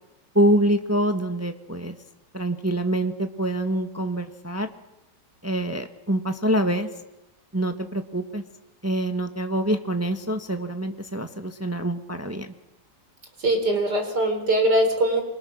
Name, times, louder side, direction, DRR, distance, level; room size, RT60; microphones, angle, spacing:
voice 1, 0.3-1.9 2.3-4.7 5.4-6.9 7.5-8.4 8.8-12.5, right 1 dB, 10° right, 7 dB, 1.3 m, -25 dB
voice 2, 13.4-15.2, right 1 dB, 65° right, 4 dB, 5.0 m, -21 dB
27.0 x 25.5 x 6.4 m, 0.97 s
omnidirectional pair, 1.9 m